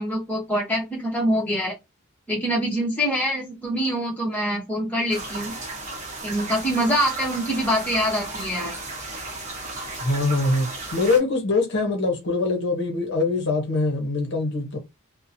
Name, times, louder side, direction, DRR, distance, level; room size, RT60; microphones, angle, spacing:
voice 1, 0.0-1.7 2.3-5.5 6.2-8.7, equal, 5° left, 0.8 m, -25 dB
sound 1, 5.1-11.2, right 2 dB, 30° right, 0.8 m, -34 dB
voice 2, 10.0-10.7 10.9-14.8, left 3 dB, 50° left, 0.7 m, -23 dB
2.8 x 2.1 x 2.6 m
head